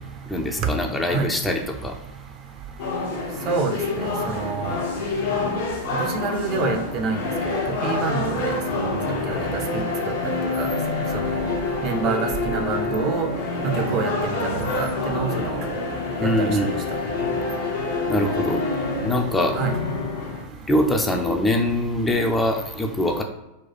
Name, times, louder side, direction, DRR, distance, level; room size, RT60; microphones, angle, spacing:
voice 1, 0.3-1.9 16.2-16.7 18.1-18.6 19.0-19.6 20.7-23.2, left 1 dB, 10° left, 3 dB, 0.5 m, -23 dB
sound 1, 2.8-20.4, left 3 dB, 60° left, 0.8 m, -27 dB
voice 2, 3.5-4.8 5.9-7.2 7.5-8.9 9.3-9.4 10.6-10.7 11.3-11.5 11.8-13.3 13.6-14.4 14.8-15.6 16.4-16.5 19.5-19.7, right 5 dB, 35° right, 5 dB, 0.6 m, -27 dB
4.2 x 2.3 x 4.0 m, 0.94 s
figure-of-eight pair, 90°, 0 cm